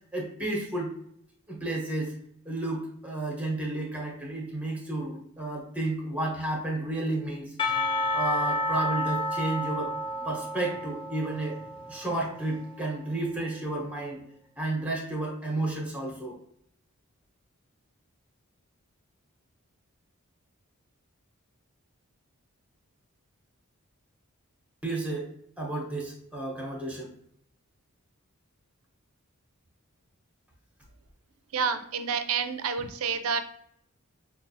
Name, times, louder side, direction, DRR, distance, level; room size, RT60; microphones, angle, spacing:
voice 1, 0.1-0.9 1.5-2.1 2.4-7.5 8.1-9.9 10.2-11.6 11.9-14.2 14.6-16.4 24.8-25.3 25.6-27.1, right 2 dB, 5° right, -2 dB, 0.9 m, -32 dB
Percussion / Church bell, 7.6-12.8, left 1 dB, 25° left, 0.4 m, -31 dB
voice 2, 31.5-33.4, right 6 dB, 75° right, 9 dB, 0.4 m, -29 dB
5.4 x 2.4 x 2.6 m, 0.71 s
head